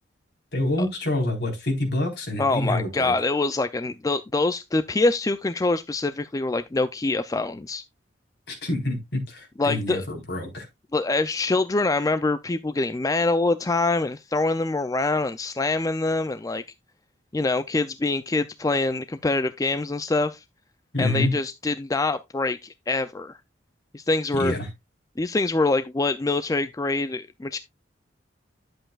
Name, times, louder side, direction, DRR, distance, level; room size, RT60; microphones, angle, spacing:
voice 1, 0.5-3.1 8.5-10.7 20.9-21.3 24.3-24.7, left 1 dB, 60° left, 4.0 m, -27 dB
voice 2, 2.4-7.8 9.6-10.0 10.9-16.6 17.3-20.4 21.0-23.4 23.9-24.5 25.2-27.6, left 3 dB, 20° left, 0.4 m, -25 dB
11.0 x 7.7 x 2.4 m
head